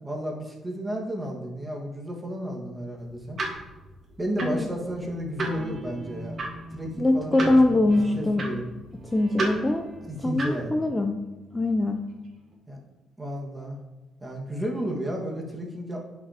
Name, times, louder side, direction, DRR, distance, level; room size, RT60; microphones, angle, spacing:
voice 1, 0.0-3.4 4.2-6.4 6.7-7.9 8.1-8.7 10.1-10.7 12.7-12.8 13.2-13.8 14.2-16.0, equal, 15° right, -1 dB, 1.8 m, -32 dB
sound 1, 3.0-10.7, right 2 dB, 40° right, 2.1 m, -35 dB
Guitar, 5.4-12.5, right 2 dB, 70° right, 1.6 m, -43 dB
voice 2, 7.0-8.4 9.1-9.9 10.2-11.1 11.5-12.0, left 2 dB, 15° left, 5 dB, 0.6 m, -22 dB
10.5 x 6.0 x 3.0 m, 1.2 s
cardioid pair, 90°, 0 cm